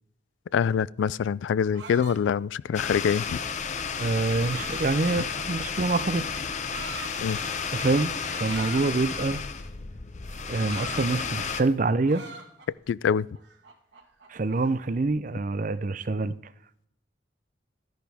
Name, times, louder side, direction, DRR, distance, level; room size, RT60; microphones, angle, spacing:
voice 1, 0.5-3.4 5.2-5.3 7.2-7.4 12.9-13.3, left 7 dB, 80° left, 0.3 m, -25 dB
sound 1, 1.3-5.7 6.4-7.1 8.4-9.1 10.3-11.7 12.0-12.9 13.3-15.0, right 4 dB, 70° right, 1.8 m, -45 dB
sound 2, 2.7-11.6, left 6 dB, 40° left, 0.7 m, -32 dB
voice 2, 4.0-6.4 7.7-9.4 10.5-12.2 14.3-16.3, right 3 dB, 45° right, 0.5 m, -26 dB
13.0 x 10.5 x 3.5 m
head